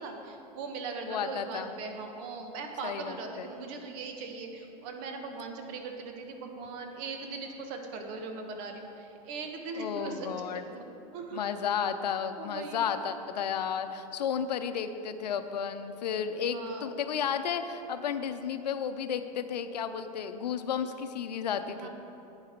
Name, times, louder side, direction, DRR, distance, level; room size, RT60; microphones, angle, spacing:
voice 1, 0.0-10.8 11.1-11.5 12.4-13.0 16.5-16.9 21.8-21.9, right 4 dB, 55° right, 4 dB, 1.4 m, -40 dB
voice 2, 1.0-1.7 2.8-3.5 9.8-10.6 11.3-21.9, left 7 dB, 85° left, 9 dB, 0.6 m, -33 dB
10.5 x 8.8 x 3.7 m, 2.9 s
hypercardioid pair, 105°, 21 cm